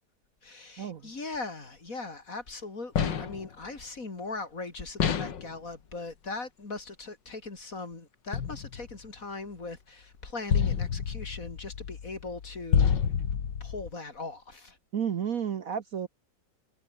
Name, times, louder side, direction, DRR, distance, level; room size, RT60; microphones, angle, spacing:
voice 1, 0.4-13.3 13.6-14.8, left 3 dB, 45° left, 3.8 m, -40 dB
sound 1, 3.0-3.5 5.0-5.5 8.3-9.0 10.5-13.9, left 7 dB, 75° left, 2.4 m, -29 dB
voice 2, 14.9-16.1, right 8 dB, 55° right, 1.3 m, -31 dB
omnidirectional pair, 1.9 m